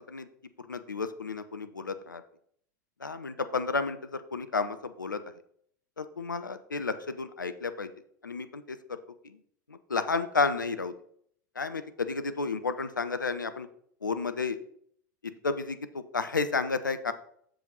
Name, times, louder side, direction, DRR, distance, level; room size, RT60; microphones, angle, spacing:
voice 1, 0.6-2.2 3.0-5.2 6.0-7.9 8.2-9.0 9.2-9.4 9.7-10.9 11.6-13.7 14.0-14.6 15.4-17.1, left 4 dB, 85° left, 11 dB, 0.6 m, -32 dB
7.7 x 6.9 x 3.9 m, 0.63 s
figure-of-eight pair, 85°, 10 cm